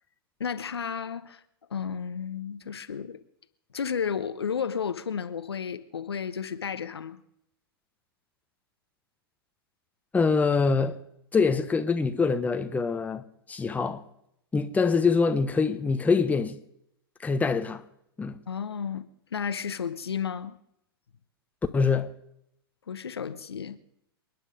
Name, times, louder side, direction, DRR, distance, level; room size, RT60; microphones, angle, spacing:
voice 1, 0.4-1.4 1.7-3.2 3.7-7.2 18.5-19.0 19.3-20.6 22.9-23.8, left 7 dB, 80° left, 1.0 m, -32 dB
voice 2, 10.1-11.0 11.3-13.2 13.5-14.0 14.5-16.6 17.2-17.8 18.2-18.4 21.7-22.1, left 4 dB, 10° left, 1.2 m, -24 dB
28.0 x 10.0 x 5.1 m
figure-of-eight pair, 105°, 13 cm